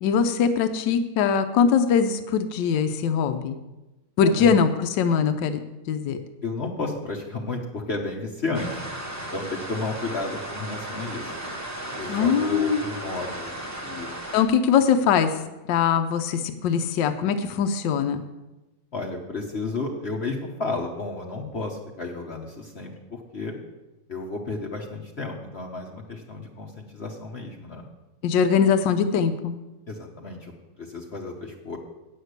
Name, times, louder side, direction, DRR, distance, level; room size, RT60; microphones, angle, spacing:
voice 1, 0.0-3.6 4.2-5.6 5.9-6.2 12.1-12.8 14.3-15.4 15.7-18.2 28.2-29.5, left 7 dB, 75° left, 8 dB, 1.4 m, -22 dB
voice 2, 4.2-4.6 6.4-8.9 9.3-11.3 12.0-13.5 13.8-14.1 18.9-23.5 24.1-27.8 29.9-30.5 30.8-31.8, left 3 dB, 40° left, 0 dB, 1.1 m, -32 dB
sound 1, 8.5-14.4, right 1 dB, 15° right, 0.7 m, -35 dB
9.2 x 6.6 x 8.0 m, 1.1 s
omnidirectional pair, 2.0 m